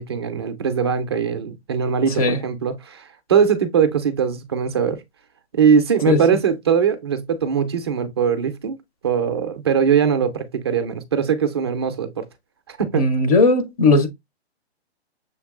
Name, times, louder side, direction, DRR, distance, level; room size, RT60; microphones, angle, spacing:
voice 1, 0.0-5.0 5.5-8.8 9.0-12.3 12.7-13.1, right 7 dB, 25° right, 0.4 m, -21 dB
voice 2, 12.9-14.1, left 3 dB, 35° left, 0.8 m, -17 dB
6.5 x 2.8 x 2.4 m
hypercardioid pair, 155°, 33 cm